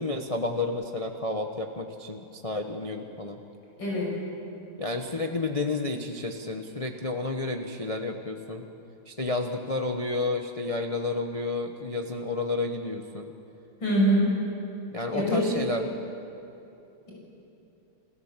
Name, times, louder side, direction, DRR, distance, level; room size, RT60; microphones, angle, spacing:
voice 1, 0.0-3.4 4.8-8.6 9.1-13.3 14.9-15.9, left 2 dB, 35° left, 4 dB, 0.6 m, -31 dB
voice 2, 3.8-4.1 13.8-14.3 15.1-15.6, equal, 55° left, -4 dB, 6.7 m, -23 dB
29.5 x 16.5 x 7.4 m, 2.8 s
omnidirectional pair, 2.4 m